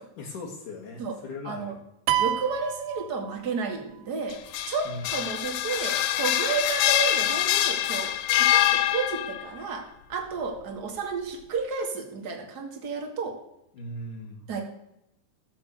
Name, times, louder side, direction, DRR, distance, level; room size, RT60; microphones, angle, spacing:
voice 1, 0.2-1.8 4.8-5.1 13.7-14.5, left 2 dB, 60° left, 0 dB, 3.0 m, -38 dB
voice 2, 1.4-1.7 2.2-4.4 4.7-13.4 14.5-14.6, right 5 dB, 30° right, 2 dB, 2.2 m, -32 dB
sound 1, 2.1-3.8, right 11 dB, 85° right, 2.8 m, -28 dB
sound 2, 4.3-9.5, left 13 dB, 75° left, 2.5 m, -24 dB
15.0 x 7.7 x 8.1 m, 0.81 s
omnidirectional pair, 4.6 m